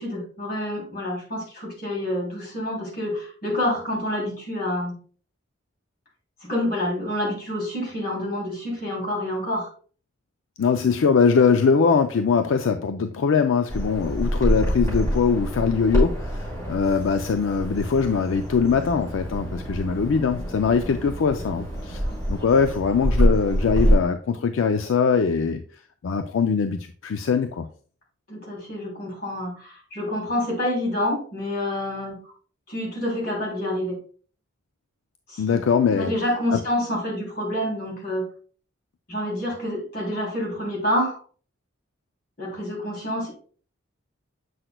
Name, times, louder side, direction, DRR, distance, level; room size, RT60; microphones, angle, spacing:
voice 1, 0.0-4.9 6.4-9.7 22.1-22.2 28.3-32.3 32.7-33.9 35.3-35.6 35.9-38.2 39.1-41.2 42.4-43.3, left 1 dB, 50° left, -1 dB, 3.0 m, -28 dB
voice 2, 10.6-22.0 22.3-25.6 26.0-27.7 35.4-36.1 36.5-36.6, left 5 dB, 75° left, 8 dB, 0.4 m, -22 dB
Bird vocalization bird call bird song, 13.7-23.9, equal, 15° left, 3.3 m, -26 dB
7.7 x 5.9 x 2.2 m, 0.42 s
head